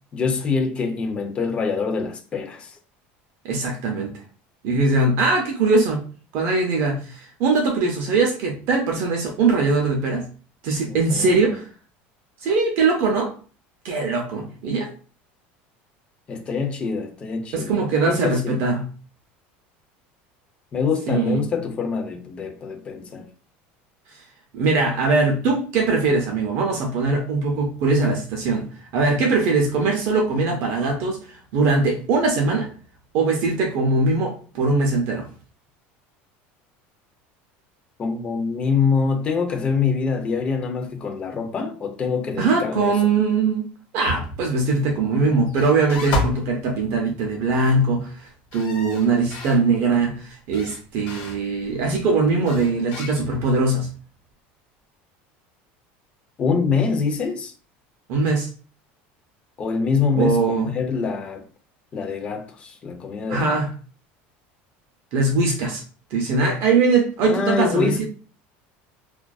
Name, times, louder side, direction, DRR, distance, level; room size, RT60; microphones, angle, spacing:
voice 1, 0.1-2.7 10.9-11.5 16.3-18.6 20.7-23.3 38.0-42.9 56.4-57.5 59.6-61.4 61.9-63.6 67.3-68.1, left 5 dB, 20° left, 0.4 m, -25 dB
voice 2, 3.4-4.1 4.6-6.0 6.3-10.3 10.6-11.7 12.4-13.3 13.8-14.9 17.5-18.8 21.1-21.4 24.5-28.7 28.9-32.7 33.1-35.3 42.4-43.7 43.9-53.9 58.1-58.5 60.2-60.7 63.3-63.7 65.1-65.8 66.1-68.1, right 3 dB, 50° right, 0.5 m, -21 dB
sound 1, 44.1-44.5 45.5-46.5 48.5-49.6 50.5-51.4 52.5-53.6, left 1 dB, 50° left, 0.9 m, -30 dB
2.4 x 2.2 x 2.3 m
cardioid pair, 170°, 5 cm